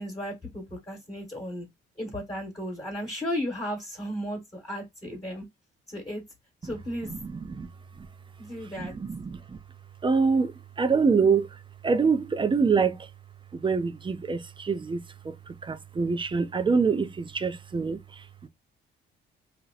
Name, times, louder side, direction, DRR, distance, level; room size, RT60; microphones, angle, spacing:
voice 1, 0.0-1.7 2.0-5.4 5.9-6.2 6.6-7.1 8.4-8.9, equal, 20° left, 1.4 m, -34 dB
voice 2, 7.1-7.7 8.0-8.1 8.8-9.6 10.0-11.5 11.8-13.1 13.5-15.3 15.6-18.5, right 5 dB, 25° right, 0.5 m, -26 dB
2.8 x 2.1 x 3.9 m
cardioid pair, 90°, 20 cm